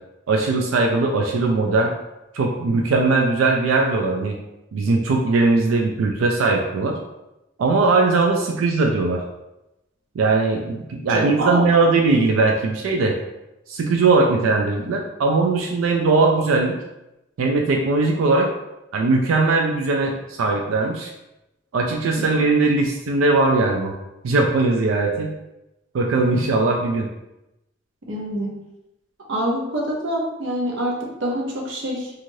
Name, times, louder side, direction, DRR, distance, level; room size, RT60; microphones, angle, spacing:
voice 1, 0.3-1.9 2.3-4.4 4.7-7.0 7.6-9.2 10.2-13.2 13.7-16.7 17.4-18.5 18.9-21.1 21.7-23.9 24.2-25.3 25.9-27.1, right 3 dB, 90° right, 1 dB, 0.3 m, -19 dB
voice 2, 11.1-11.7 28.1-28.5 29.3-32.1, right 1 dB, 70° right, -2 dB, 0.7 m, -25 dB
3.0 x 2.4 x 2.6 m, 0.93 s
head